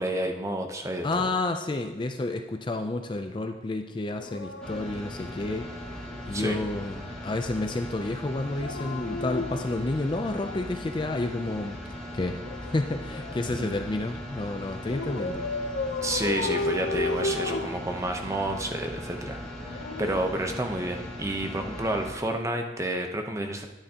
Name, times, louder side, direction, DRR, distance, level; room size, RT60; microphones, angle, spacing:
voice 1, 0.0-1.3 6.3-6.6 13.4-13.7 16.0-19.4 20.0-23.7, right 1 dB, 15° right, 3 dB, 0.7 m, -30 dB
voice 2, 1.0-5.7 6.3-11.8 12.1-15.5, left 2 dB, 25° left, 6 dB, 0.4 m, -30 dB
Dog, 4.1-6.0 8.4-10.8 12.1-13.8 14.9-18.5 19.4-21.1 22.3-22.6, left 3 dB, 90° left, 0.7 m, -34 dB
sound 1, 4.6-22.1, equal, 5° left, 2.2 m, -39 dB
12.0 x 9.3 x 2.8 m, 1.2 s
head